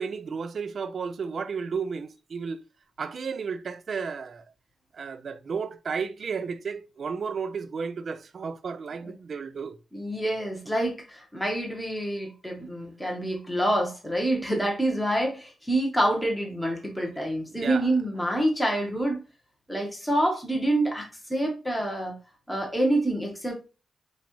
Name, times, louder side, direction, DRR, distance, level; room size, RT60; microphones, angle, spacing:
voice 1, 0.0-2.6 3.0-4.4 4.9-9.8 17.5-17.9, right 5 dB, 50° right, 0.4 m, -33 dB
voice 2, 9.9-19.2 19.7-22.1 22.5-23.5, right 1 dB, 5° left, 1.0 m, -27 dB
5.9 x 2.4 x 2.9 m
wide cardioid pair, 145°, 0 cm